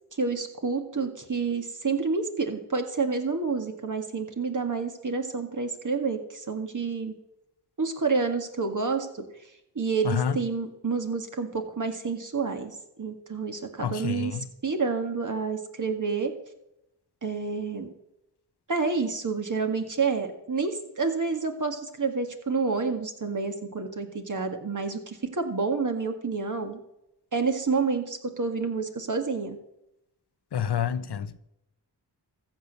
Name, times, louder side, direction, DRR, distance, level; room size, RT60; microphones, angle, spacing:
voice 1, 0.1-7.2 7.8-9.3 9.8-16.3 17.2-17.9 18.7-26.8 27.3-29.6, right 4 dB, 45° right, 1.9 m, -29 dB
voice 2, 10.0-10.4 13.8-14.3 30.5-31.4, left 8 dB, 65° left, 0.9 m, -28 dB
14.5 x 6.4 x 6.8 m
cardioid pair, 50°, 42 cm